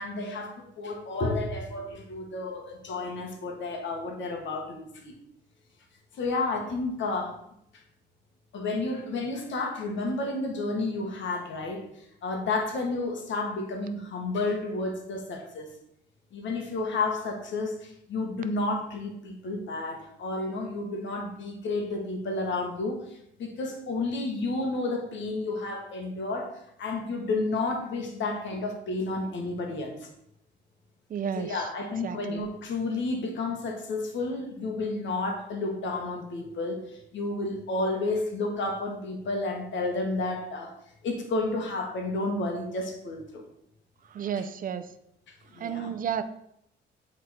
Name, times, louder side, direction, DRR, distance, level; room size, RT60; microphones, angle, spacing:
voice 1, 0.0-5.1 6.1-7.3 8.5-11.8 12.2-15.7 16.3-30.1 31.4-40.7 41.0-43.4 45.5-45.9, left 2 dB, 70° left, 3 dB, 1.6 m, -31 dB
voice 2, 31.1-31.7 32.0-32.4 44.0-44.9 45.5-46.2, right 8 dB, 45° right, 11 dB, 0.5 m, -32 dB
8.3 x 3.8 x 4.3 m, 0.75 s
cardioid pair, 90°, 20 cm